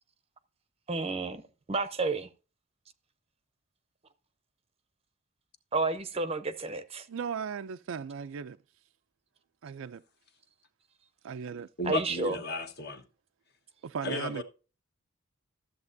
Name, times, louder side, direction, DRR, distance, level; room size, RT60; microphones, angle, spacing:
voice 1, 0.9-2.3 5.7-7.1 11.9-12.4, right 3 dB, 25° right, 0.6 m, -31 dB
voice 2, 7.1-8.6 9.6-10.0 11.2-11.7 13.8-14.4, right 6 dB, 65° right, 0.4 m, -37 dB
voice 3, 11.8-13.0 14.0-14.4, left 2 dB, 50° left, 1.3 m, -34 dB
13.0 x 7.9 x 2.6 m
head